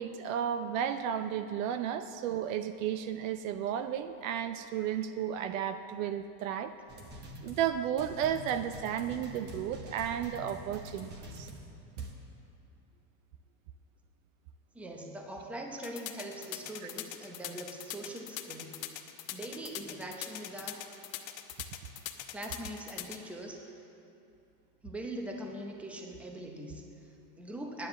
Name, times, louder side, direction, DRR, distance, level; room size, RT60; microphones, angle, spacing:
voice 1, 0.0-6.7 7.4-11.5, right 9 dB, 55° right, 11 dB, 0.6 m, -33 dB
sound 1, 6.9-12.1, equal, 20° right, 1.1 m, -46 dB
voice 2, 14.7-18.8 19.3-20.8 21.6-21.7 22.3-23.8 24.8-27.9, right 1 dB, 5° right, 2 dB, 0.7 m, -42 dB
sound 2, 15.8-23.2, left 14 dB, 50° left, 1.0 m, -41 dB
9.8 x 9.5 x 7.8 m, 2.7 s
supercardioid pair, 145°, 48 cm